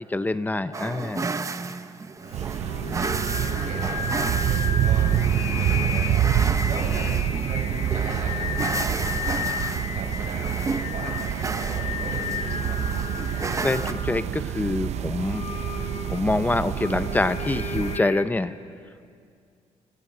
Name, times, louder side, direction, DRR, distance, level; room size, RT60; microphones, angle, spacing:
voice 1, 0.1-1.3 13.6-18.5, left 2 dB, 15° left, 12 dB, 0.7 m, -26 dB
sound 1, 0.7-13.9, right 4 dB, 25° right, 0.8 m, -33 dB
voice 2, 2.2-4.1 4.5-7.1 7.4-12.8, right 4 dB, 85° right, 0 dB, 6.5 m, -39 dB
Singing, 2.3-18.2, left 7 dB, 55° left, 1.3 m, -34 dB
sound 2, 2.3-18.0, right 10 dB, 65° right, 0.5 m, -27 dB
29.0 x 23.0 x 6.1 m, 2.3 s
cardioid pair, 120°, 12 cm